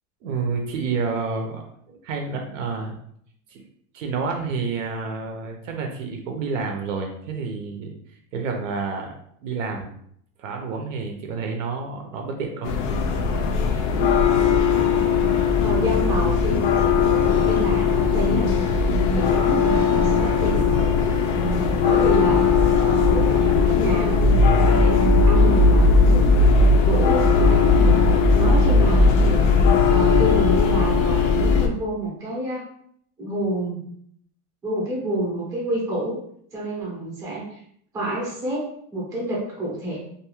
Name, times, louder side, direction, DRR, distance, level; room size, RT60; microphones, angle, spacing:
voice 1, 0.2-3.0 3.5-3.6 3.9-9.1 9.4-9.9 10.4-12.7, right 4 dB, 55° right, 3 dB, 0.5 m, -29 dB
sound 1, 12.6-31.7, left 4 dB, 60° left, 0.5 m, -18 dB
voice 2, 15.6-18.5 19.1-20.8 21.4-22.4 22.8-26.3 26.8-28.0 28.3-29.5 29.9-32.7 33.2-33.8 34.6-36.2 36.5-37.6 37.9-40.0, right 1 dB, 5° right, -5 dB, 0.6 m, -28 dB
2.6 x 2.3 x 2.9 m, 0.67 s
supercardioid pair, 150°, 46 cm